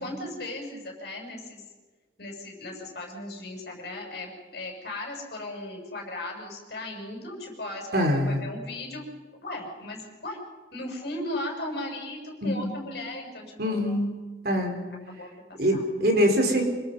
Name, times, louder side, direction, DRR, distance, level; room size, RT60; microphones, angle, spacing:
voice 1, 0.0-1.6 2.2-10.4 10.7-13.8 15.1-15.8, left 1 dB, 60° left, 0 dB, 7.1 m, -37 dB
voice 2, 7.9-8.4 12.4-12.7 13.6-14.1 14.4-14.9 15.6-16.6, equal, 55° right, 4 dB, 4.1 m, -24 dB
26.5 x 24.0 x 5.5 m, 1.3 s
head